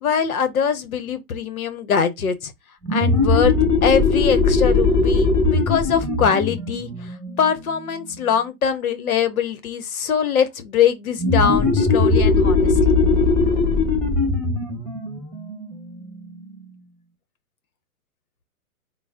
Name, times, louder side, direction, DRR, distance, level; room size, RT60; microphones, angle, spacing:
voice 1, 0.0-2.5 2.9-3.5 3.8-6.9 7.4-12.7, left 7 dB, 70° left, 1.0 m, -22 dB
sound 1, 2.8-8.1 11.2-16.5, left 3 dB, ahead, 1.4 m, -19 dB
3.8 x 2.1 x 3.6 m
hypercardioid pair, 130°, 45 cm